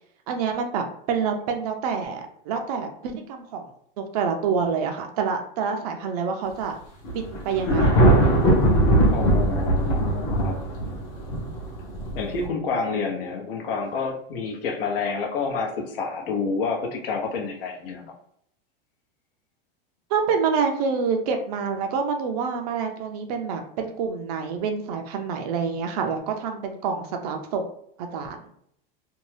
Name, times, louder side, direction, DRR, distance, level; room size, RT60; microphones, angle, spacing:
voice 1, 0.3-3.7 4.0-6.8 7.1-8.0 20.1-27.7 28.0-28.4, right 5 dB, 45° right, 5 dB, 0.4 m, -27 dB
Thunder, 7.0-12.5, right 1 dB, 35° left, 0.8 m, -20 dB
voice 2, 9.1-10.6 12.1-18.1, left 4 dB, 70° left, 1 dB, 0.9 m, -29 dB
2.6 x 2.2 x 3.2 m, 0.69 s
supercardioid pair, 170°, 29 cm